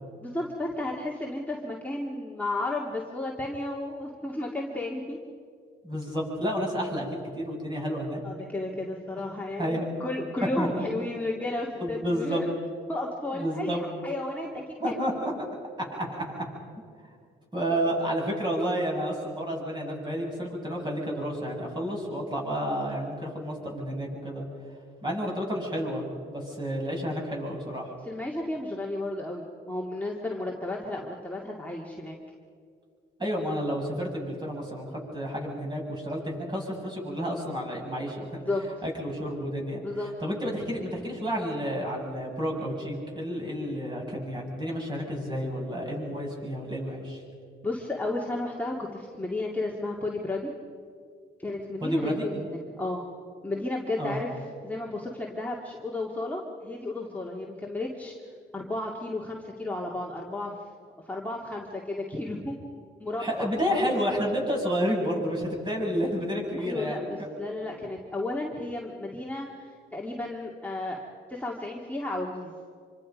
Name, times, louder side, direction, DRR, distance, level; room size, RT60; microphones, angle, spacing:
voice 1, 0.2-5.2 8.2-12.5 12.9-15.1 28.0-32.2 38.5-38.7 39.8-40.1 47.6-50.5 51.4-53.0 53.4-54.3 54.6-58.1 58.5-60.5 61.1-62.7 63.0-63.9 66.6-71.0 71.3-72.5, left 2 dB, 10° left, -2 dB, 2.3 m, -33 dB
voice 2, 5.8-7.1 7.3-8.2 9.6-9.9 10.6-10.8 11.8-12.4 13.3-13.8 14.8-15.5 15.9-16.4 17.5-24.5 25.0-27.9 33.2-38.4 38.8-39.8 40.2-47.2 51.8-52.3 54.0-54.2 63.2-67.3, equal, 20° right, -1 dB, 7.7 m, -30 dB
26.5 x 25.0 x 5.3 m, 2.2 s
cardioid pair, 90°, 20 cm